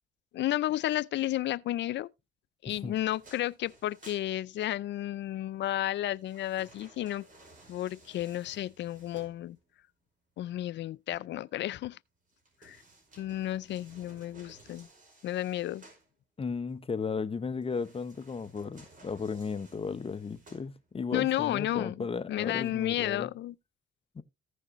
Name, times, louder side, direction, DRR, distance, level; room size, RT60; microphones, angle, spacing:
voice 1, 0.3-2.1 2.6-7.2 7.7-9.6 10.4-12.0 12.6-12.8 13.2-14.9 15.2-15.8 21.1-23.5, left 14 dB, 65° left, 0.4 m, -32 dB
voice 2, 2.7-3.0 16.4-23.3 24.1-24.2, left 5 dB, 30° left, 0.8 m, -35 dB
sound 1, 3.1-5.0 5.8-9.8 12.3-16.1 17.6-21.1 21.6-21.7, right 2 dB, 40° right, 5.0 m, -57 dB
15.0 x 6.4 x 3.0 m
cardioid pair, 90°, 20 cm